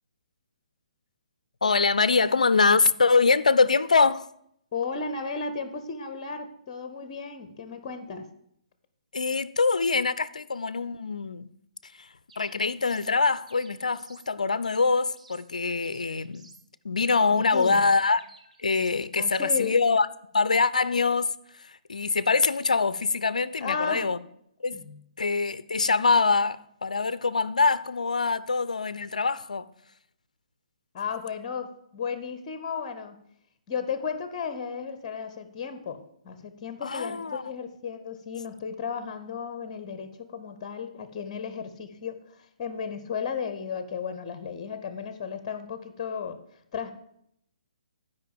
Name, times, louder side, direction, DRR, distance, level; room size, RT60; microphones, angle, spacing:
voice 1, 1.6-4.3 9.1-11.5 11.8-12.1 12.4-16.5 16.8-18.2 18.6-20.1 20.3-24.2 24.6-24.8 25.2-29.7 36.8-37.4, left 4 dB, 65° left, 0.4 m, -24 dB
voice 2, 4.7-8.3 17.5-17.8 19.2-19.8 23.6-24.1 24.7-25.0 30.9-33.2 33.7-46.4 46.7-46.9, left 6 dB, 30° left, 0.8 m, -34 dB
sound 1, 12.3-13.1 13.5-14.3 14.6-15.5 15.8-16.7 17.0-17.8 18.2-19.0, right 3 dB, 60° right, 1.3 m, -54 dB
9.1 x 5.2 x 7.4 m
figure-of-eight pair, 130°, 4 cm